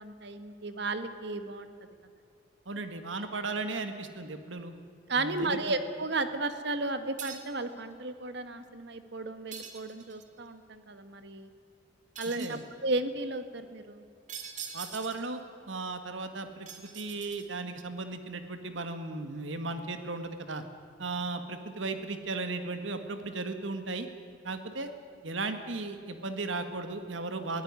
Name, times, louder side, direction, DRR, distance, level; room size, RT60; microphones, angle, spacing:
voice 1, 0.0-1.7 5.1-11.5 12.2-14.0, right 2 dB, 60° right, 10 dB, 1.7 m, -34 dB
voice 2, 2.6-4.7 5.1-5.7 12.4-12.6 14.7-15.4 15.7-20.6 21.0-24.1 24.4-24.9 25.2-27.6, right 3 dB, 80° right, 8 dB, 1.8 m, -36 dB
sound 1, 7.2-7.6 9.5-10.3 12.2-12.7 14.3-15.3 16.7-17.7, right 7 dB, 40° right, 2.4 m, -43 dB
22.5 x 16.5 x 9.7 m, 2.5 s
head